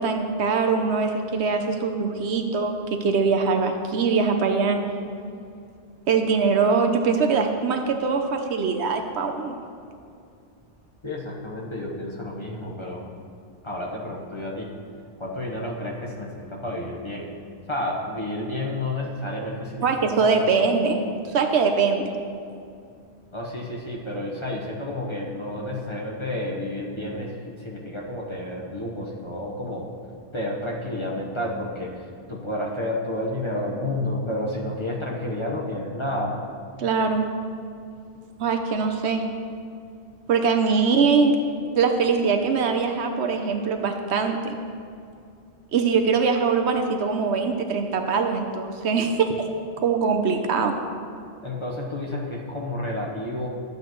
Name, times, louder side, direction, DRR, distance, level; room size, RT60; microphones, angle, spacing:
voice 1, 0.0-2.7 3.0-4.8 6.1-9.6 19.8-21.0 21.3-22.1 36.8-37.3 38.4-39.2 40.3-41.3 41.8-44.5 45.7-49.5 49.8-50.7, right 5 dB, 75° right, 5 dB, 1.0 m, -22 dB
voice 2, 11.0-13.1 13.6-14.7 15.2-17.3 17.7-19.9 20.2-20.4 23.3-29.9 30.3-36.3 51.4-53.5, left 1 dB, 25° left, -3 dB, 1.1 m, -30 dB
12.5 x 8.0 x 3.1 m, 2.5 s
omnidirectional pair, 1.1 m